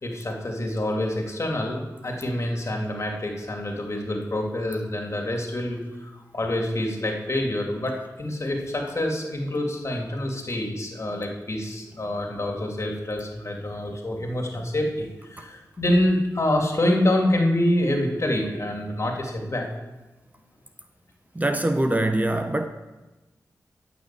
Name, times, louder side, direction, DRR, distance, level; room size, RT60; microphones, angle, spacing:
voice 1, 0.0-19.7, left 1 dB, 45° left, 2.6 m, -26 dB
voice 2, 21.3-22.7, right 1 dB, 25° right, 0.9 m, -23 dB
12.0 x 6.1 x 7.6 m
cardioid pair, 45°, 7 cm